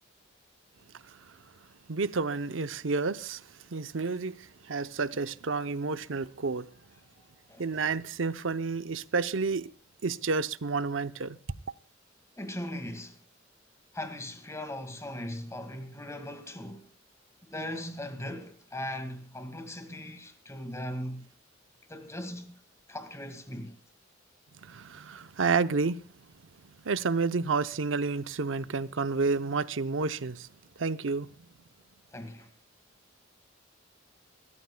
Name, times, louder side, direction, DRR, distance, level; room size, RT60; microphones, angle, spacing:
voice 1, 1.9-3.4 3.7-6.7 7.6-9.7 10.0-11.4 24.6-26.0 26.8-30.5 30.8-31.3, right 4 dB, 80° right, 0.7 m, -30 dB
voice 2, 12.4-13.2 13.9-16.9 17.4-21.3 21.9-22.6 22.9-23.8 32.1-32.5, left 1 dB, 15° left, 2.1 m, -39 dB
28.0 x 14.0 x 2.3 m
head